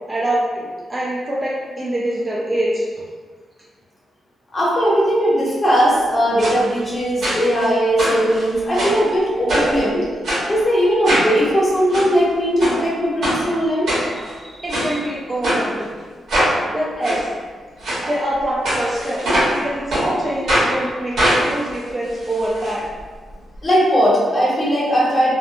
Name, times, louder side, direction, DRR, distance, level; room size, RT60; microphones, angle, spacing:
voice 1, 0.0-2.9 14.1-15.9 16.7-17.3 18.0-22.9, right 1 dB, 20° right, -6 dB, 0.4 m, -24 dB
voice 2, 4.5-10.1 10.5-13.9 23.6-25.3, equal, 30° left, -7 dB, 0.8 m, -18 dB
sound 1, 6.4-6.6 7.2-7.7 8.0-9.0 9.5-9.8 10.2-10.4 11.0-11.3 11.7-12.1 12.6-12.8 13.2-13.4 13.9-14.3 14.7-14.9 15.4-15.6 16.3-16.5 17.0-17.2 17.8-18.0 18.6-19.6 19.9-20.1 20.5-20.7 21.2-22.7 23.0-23.1 23.3-23.4, right 1 dB, 75° right, 1.2 m, -21 dB
2.6 x 2.1 x 2.6 m, 1.5 s
cardioid pair, 120°, 0 cm